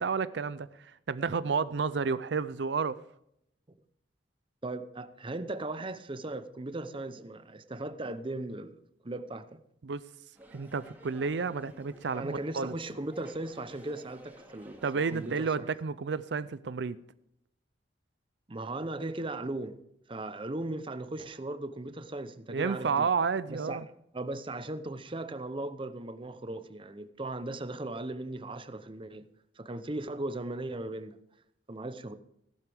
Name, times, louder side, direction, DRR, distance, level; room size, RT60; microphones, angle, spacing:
voice 1, 0.0-3.0 9.8-10.0 10.5-12.7 14.8-17.0 22.5-23.8, right 5 dB, 75° right, 0.5 m, -31 dB
voice 2, 4.6-8.8 9.0-9.6 12.1-14.8 15.1-15.7 18.5-19.8 20.1-23.1 23.5-23.8 24.1-29.2 29.6-31.2 31.7-32.1, right 2 dB, 30° right, 0.8 m, -37 dB
crowd int medium busy restaurant Montreal Canada, 10.3-15.4, right 1 dB, 10° right, 2.6 m, -54 dB
17.0 x 12.0 x 3.5 m
head